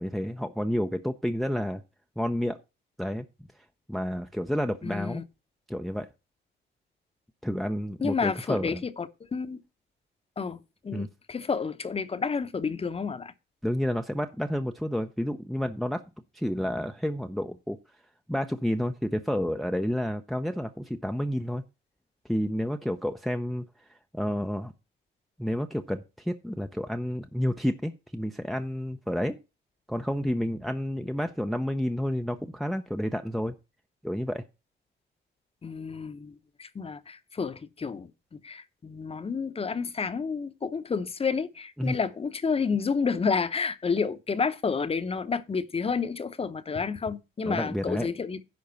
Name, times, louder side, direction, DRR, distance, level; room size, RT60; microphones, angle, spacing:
voice 1, 0.0-1.8 2.2-2.6 3.0-3.3 3.9-5.2 5.7-6.1 7.4-8.8 10.9-11.1 13.6-16.0 16.3-17.8 18.3-21.6 22.3-23.6 23.9-24.7 25.4-29.4 29.9-33.5 34.0-34.4 41.8-42.0 47.5-48.1, equal, ahead, 0.6 m, -30 dB
voice 2, 4.8-5.2 8.0-9.6 10.4-10.6 10.8-13.3 35.6-48.4, left 5 dB, 30° left, 0.9 m, -30 dB
10.5 x 3.9 x 6.8 m
cardioid pair, 90°, 20 cm